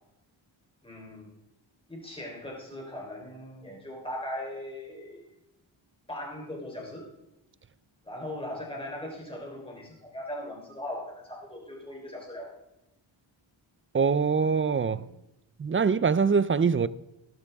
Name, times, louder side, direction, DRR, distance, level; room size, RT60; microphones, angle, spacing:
voice 1, 0.8-1.3 1.9-5.3 6.1-7.1 8.0-12.5 14.9-15.0, left 1 dB, 10° left, 3.9 m, -39 dB
voice 2, 13.9-15.0 15.6-16.9, right 5 dB, 30° right, 0.4 m, -23 dB
18.0 x 12.0 x 3.5 m
wide cardioid pair, 155°, 48 cm